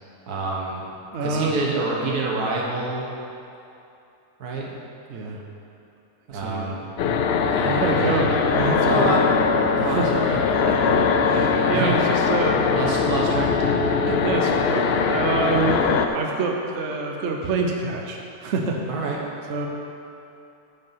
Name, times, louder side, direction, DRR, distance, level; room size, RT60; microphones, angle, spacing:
voice 1, 0.3-0.9 1.2-3.1 4.4-4.7 6.3-6.9 7.5-8.3 8.9-9.2 9.8-10.4 11.7-12.1 12.7-13.9 15.7-15.8 18.9-19.2, right 3 dB, 80° right, -2 dB, 1.7 m, -27 dB
voice 2, 1.1-1.6 5.1-5.4 6.3-6.7 7.7-9.2 9.8-10.1 10.7-12.6 14.1-18.8 19.5-19.7, right 3 dB, 55° right, 1 dB, 1.0 m, -27 dB
sound 1, 7.0-16.1, left 5 dB, 85° left, 0.5 m, -21 dB
9.4 x 5.4 x 5.7 m, 2.7 s
omnidirectional pair, 1.6 m